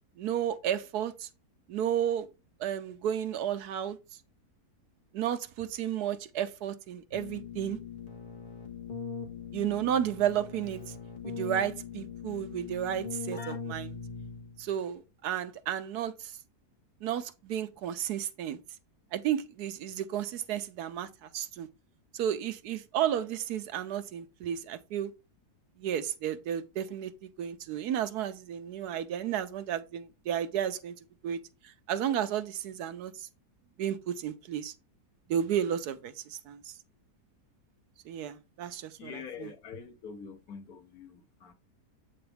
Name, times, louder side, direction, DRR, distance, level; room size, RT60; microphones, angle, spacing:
voice 1, 0.2-1.3 1.7-2.3 2.6-4.0 5.1-7.8 9.5-10.8 11.2-14.0 14.6-16.3 17.0-18.6 19.1-21.7 22.1-25.1 25.8-31.0 31.2-31.4 31.6-33.3 33.8-34.7 35.3-36.7 38.1-39.1 39.4-39.5, right 10 dB, 75° right, 1.2 m, -32 dB
Keyboard (musical), 7.1-14.7, left 5 dB, 30° left, 1.6 m, -41 dB
voice 2, 39.0-41.5, left 6 dB, 65° left, 1.4 m, -45 dB
7.8 x 3.9 x 3.3 m
omnidirectional pair, 1.7 m